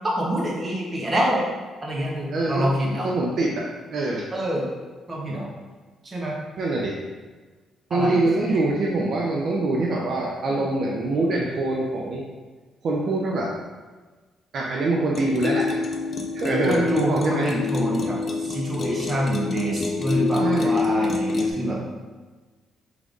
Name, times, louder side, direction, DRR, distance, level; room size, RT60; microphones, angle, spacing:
voice 1, 0.2-1.5 1.8-3.1 4.3-4.6 5.1-5.5 6.0-6.4 7.9-8.6 10.5-10.7 16.6-21.8, right 1 dB, 25° right, -4 dB, 1.2 m, -26 dB
voice 2, 2.3-2.7 3.0-4.3 6.6-7.0 7.9-12.2 12.8-13.5 14.5-15.9 16.3-17.5 20.4-20.8, right 2 dB, 60° right, -2 dB, 0.6 m, -24 dB
sound 1, 15.1-21.5, left 4 dB, 40° left, 0.6 m, -26 dB
3.6 x 3.3 x 3.8 m, 1.3 s
cardioid pair, 90°, 0 cm